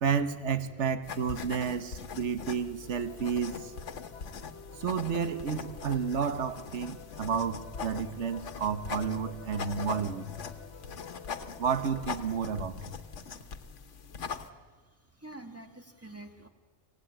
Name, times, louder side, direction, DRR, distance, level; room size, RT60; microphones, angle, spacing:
voice 1, 0.0-3.7 4.8-10.3 11.6-12.9, right 6 dB, 75° right, 11 dB, 1.4 m, -31 dB
sound 1, 1.0-14.5, left 6 dB, 85° left, 1.4 m, -42 dB
sound 2, 2.8-12.1, left 6 dB, 70° left, 1.7 m, -50 dB
voice 2, 14.6-16.5, right 2 dB, 10° right, 4 dB, 1.9 m, -48 dB
25.5 x 17.0 x 8.9 m, 1.5 s
omnidirectional pair, 1.2 m